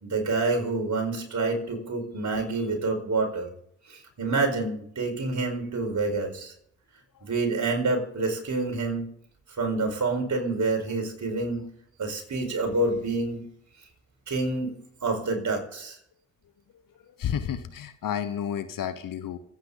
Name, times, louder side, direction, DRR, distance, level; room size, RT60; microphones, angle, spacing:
voice 1, 0.0-3.5 3.9-6.5 7.2-9.1 9.6-11.7 12.0-13.4 14.3-14.8 15.0-16.0, right 3 dB, 50° right, 3 dB, 4.9 m, -27 dB
voice 2, 17.0-19.4, left 9 dB, 60° left, 12 dB, 1.2 m, -31 dB
27.0 x 9.0 x 4.0 m, 0.69 s
hypercardioid pair, 40°, 37 cm